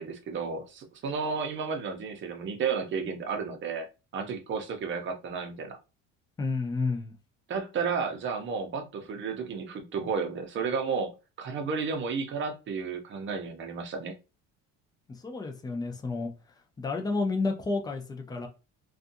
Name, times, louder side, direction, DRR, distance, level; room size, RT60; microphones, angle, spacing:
voice 1, 0.0-3.9 4.1-5.8 7.5-11.1 11.4-14.1, right 5 dB, 35° right, 0.7 m, -32 dB
voice 2, 6.4-7.1 15.2-16.3 16.8-18.5, left 3 dB, 10° left, 0.5 m, -30 dB
2.5 x 2.4 x 2.6 m
cardioid pair, 130°, 32 cm